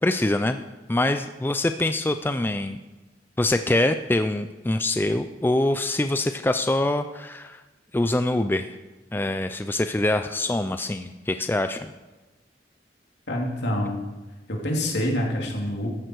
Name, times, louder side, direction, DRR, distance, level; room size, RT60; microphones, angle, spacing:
voice 1, 0.0-0.6 0.9-2.8 3.4-7.6 7.9-8.8 9.1-11.9, left 1 dB, 10° left, 9 dB, 0.4 m, -24 dB
voice 2, 13.3-14.0 14.5-15.9, left 1 dB, 70° left, -1 dB, 3.1 m, -26 dB
14.0 x 11.0 x 4.7 m, 1.1 s
head